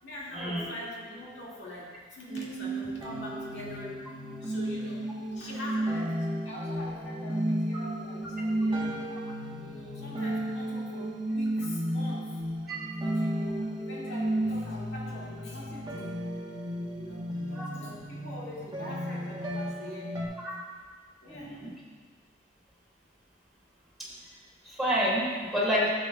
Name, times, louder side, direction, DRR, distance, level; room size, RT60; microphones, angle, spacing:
voice 1, 0.0-4.0 4.4-5.0 5.3-6.2 6.4-9.0 9.6-12.4 13.0-16.1 16.9-20.1 20.5-20.6 21.2-21.6, left 1 dB, 65° left, -5 dB, 2.1 m, -43 dB
sound 1, 2.3-20.3, right 1 dB, 25° right, 1.1 m, -33 dB
voice 2, 21.3-21.7 24.6-25.9, equal, ahead, -8 dB, 2.2 m, -28 dB
11.5 x 7.2 x 2.3 m, 1.5 s
head